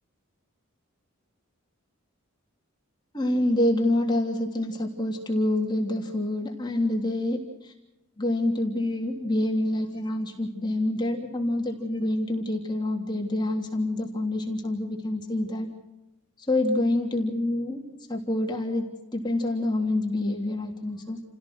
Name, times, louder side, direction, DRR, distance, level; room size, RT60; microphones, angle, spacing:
voice 1, 3.1-7.7 8.2-15.7 16.5-18.9 19.1-21.2, left 1 dB, 20° left, 1 dB, 3.2 m, -27 dB
29.5 x 17.0 x 6.2 m, 0.94 s
head